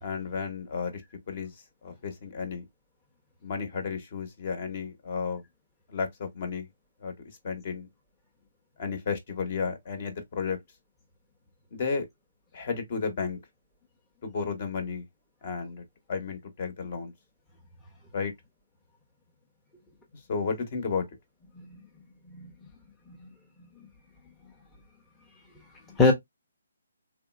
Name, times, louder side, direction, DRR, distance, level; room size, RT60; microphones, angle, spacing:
voice 1, 0.0-1.0 1.3-1.5 1.8-2.6 3.4-5.4 5.9-6.7 7.0-7.1 7.4-7.9 8.8-10.6 11.7-12.1 12.5-13.4 14.2-15.0 15.4-15.8 16.1-17.1 18.1-18.3 20.3-21.1, left 5 dB, 45° left, 1.0 m, -32 dB
voice 2, 21.5-21.8 22.3-22.5 23.1-23.3 23.8-23.9 25.9-26.1, left 3 dB, 10° left, 0.7 m, -25 dB
3.2 x 2.5 x 2.3 m
hypercardioid pair, 150°, 0 cm